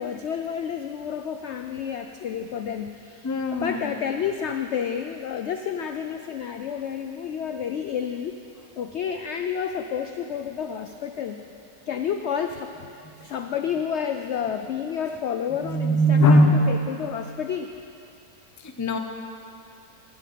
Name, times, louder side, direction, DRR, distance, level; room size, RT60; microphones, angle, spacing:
voice 1, 0.0-8.4 8.7-11.4 11.9-12.9 13.2-17.7, left 8 dB, 75° left, 6 dB, 0.6 m, -30 dB
voice 2, 3.2-3.9 15.6-16.7 18.6-19.0, equal, 25° left, 4 dB, 0.4 m, -20 dB
12.0 x 7.0 x 9.3 m, 2.6 s
omnidirectional pair, 1.7 m